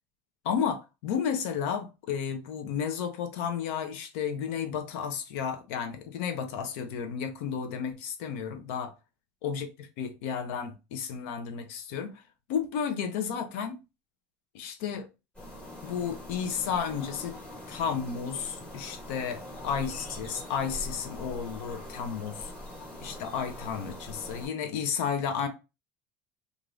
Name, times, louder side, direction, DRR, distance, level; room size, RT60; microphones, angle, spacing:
voice 1, 0.4-8.9 9.4-12.2 12.5-13.8 14.5-15.1 15.8-17.4 17.7-22.5 23.0-25.5, left 7 dB, 80° left, 0.6 m, -32 dB
sound 1, 15.3-24.5, left 1 dB, 15° left, 1.6 m, -43 dB
3.0 x 2.5 x 2.5 m
supercardioid pair, 120°, 7 cm